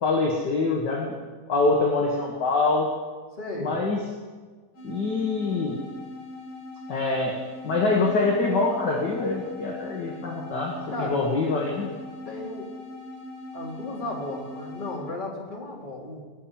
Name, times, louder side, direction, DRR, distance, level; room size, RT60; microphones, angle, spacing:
voice 1, 0.0-1.1 1.5-2.9 3.6-4.0 4.8-5.8 6.9-11.9, left 3 dB, 45° left, -1 dB, 1.7 m, -25 dB
voice 2, 3.3-3.8 10.9-11.2 12.2-12.7 13.5-16.2, left 1 dB, 15° left, -3 dB, 2.6 m, -34 dB
sound 1, 4.7-15.1, left 2 dB, 65° left, 3.5 m, -41 dB
19.5 x 6.7 x 8.8 m, 1.4 s
omnidirectional pair, 3.6 m